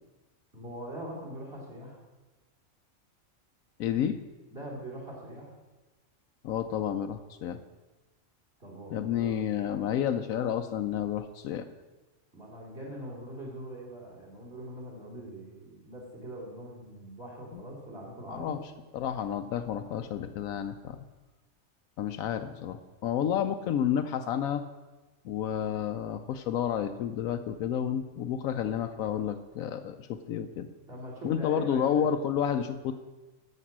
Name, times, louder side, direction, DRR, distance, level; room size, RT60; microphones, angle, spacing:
voice 1, 0.5-2.0 4.5-5.5 8.6-9.4 12.3-18.6 30.8-32.1, right 1 dB, 45° right, -2 dB, 3.3 m, -42 dB
voice 2, 3.8-4.2 6.4-7.6 8.9-11.7 17.5-17.6 18.3-18.6 18.9-21.0 22.0-24.6 25.2-30.7 31.2-32.9, left 9 dB, 85° left, 7 dB, 1.0 m, -30 dB
10.5 x 6.7 x 7.3 m, 1.2 s
omnidirectional pair, 1.4 m